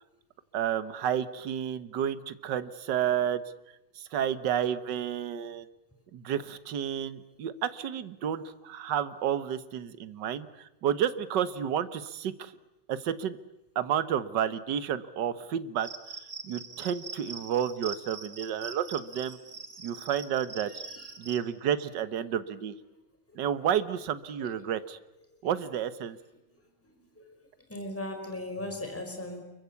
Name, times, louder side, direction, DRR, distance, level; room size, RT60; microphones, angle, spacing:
voice 1, 0.5-3.4 4.0-5.7 6.1-12.5 12.9-13.4 13.8-15.9 16.4-19.4 19.8-20.7 21.2-22.8 23.4-25.0 25.4-26.2, right 9 dB, 60° right, 13 dB, 1.7 m, -31 dB
Cricket, 15.8-21.4, right 5 dB, 45° right, 2.7 m, -43 dB
voice 2, 20.6-21.1 23.3-23.4 24.4-24.5 26.5-26.6 26.9-27.3 27.7-29.4, left 1 dB, 5° left, 4 dB, 4.6 m, -38 dB
29.0 x 23.0 x 8.5 m, 0.92 s
omnidirectional pair, 2.3 m